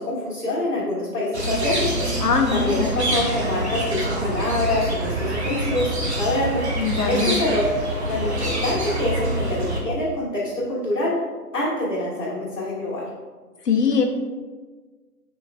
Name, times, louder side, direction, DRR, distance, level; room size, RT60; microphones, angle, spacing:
voice 1, 0.0-7.7 8.1-11.1 11.5-13.0, left 1 dB, 60° left, -9 dB, 1.5 m, -26 dB
sound 1, 1.3-9.8, right 1 dB, 45° right, 0.6 m, -26 dB
voice 2, 2.2-2.9 6.8-7.4 13.7-14.0, left 5 dB, 80° left, 3 dB, 0.8 m, -21 dB
4.5 x 3.1 x 2.3 m, 1.4 s
figure-of-eight pair, 165°, 47 cm